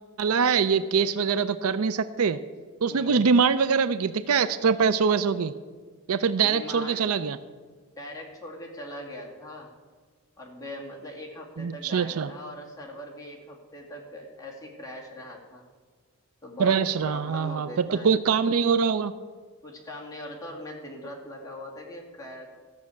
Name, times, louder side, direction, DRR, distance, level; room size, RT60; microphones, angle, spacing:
voice 1, 0.2-2.4 2.8-5.5 6.1-7.4 11.6-12.3 16.6-19.1, right 6 dB, 85° right, 14 dB, 0.5 m, -23 dB
voice 2, 2.9-3.3 6.4-7.0 8.0-9.7 10.4-15.6 16.4-18.1 19.6-22.5, left 1 dB, 15° left, -2 dB, 2.3 m, -41 dB
13.5 x 6.5 x 8.3 m, 1.5 s
head